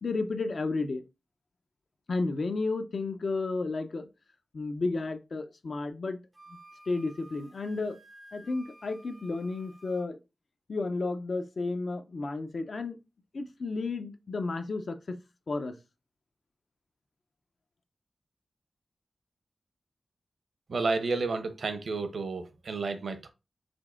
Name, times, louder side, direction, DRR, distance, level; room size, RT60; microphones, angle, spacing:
voice 1, 0.0-1.0 2.1-4.1 4.5-6.2 6.9-8.0 8.3-10.2 10.7-13.0 13.3-15.2 15.5-15.8, left 3 dB, 60° left, 0.5 m, -32 dB
Wind instrument woodwind instrument, 6.3-10.1, right 1 dB, 15° right, 0.4 m, -54 dB
voice 2, 20.7-23.3, right 3 dB, 70° right, 0.6 m, -31 dB
5.1 x 3.6 x 2.4 m
wide cardioid pair, 100°, 0 cm